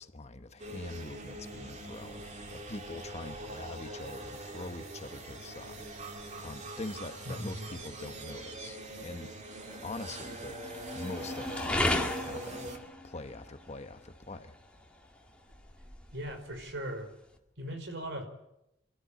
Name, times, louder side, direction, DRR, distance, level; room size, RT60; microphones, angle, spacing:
voice 1, 0.0-5.9 6.4-9.3 9.8-12.7 13.0-14.5, left 2 dB, 35° left, 1.1 m, -43 dB
sound 1, 0.6-12.8, right 2 dB, 35° right, 2.6 m, -43 dB
sound 2, 1.9-17.4, left 1 dB, 5° left, 2.3 m, -40 dB
voice 2, 7.2-7.7 16.1-17.1 17.6-18.3, right 1 dB, 65° right, 5.0 m, -39 dB
27.0 x 14.0 x 9.1 m
head